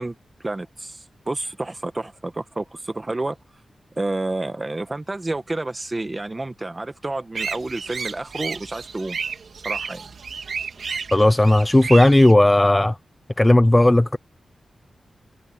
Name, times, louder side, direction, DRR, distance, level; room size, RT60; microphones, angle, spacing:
voice 1, 0.0-3.4 4.0-9.2 9.6-10.0, right 2 dB, 20° right, 1.0 m, -30 dB
sound 1, 7.4-12.3, right 5 dB, 65° right, 1.9 m, -32 dB
voice 2, 11.1-13.0 13.4-14.2, left 1 dB, 15° left, 0.3 m, -15 dB
wide cardioid pair, 135°, 0 cm